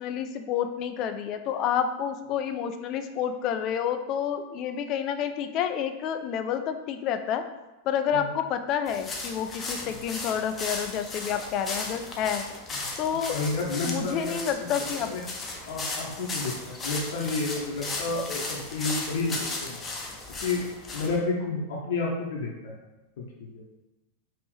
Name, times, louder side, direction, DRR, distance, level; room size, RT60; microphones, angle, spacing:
voice 1, 0.0-7.4 7.8-12.5 13.0-13.4 13.8-15.1, left 8 dB, 35° left, 8 dB, 0.4 m, -29 dB
sound 1, 8.9-21.2, left 3 dB, 20° left, 0.7 m, -36 dB
voice 2, 13.1-14.7 15.0-15.2 15.7-19.8 20.4-20.6 20.9-22.7 23.4-23.5, left 3 dB, 55° left, -2 dB, 0.8 m, -30 dB
5.1 x 2.9 x 3.2 m, 1.0 s
figure-of-eight pair, 90°, 0 cm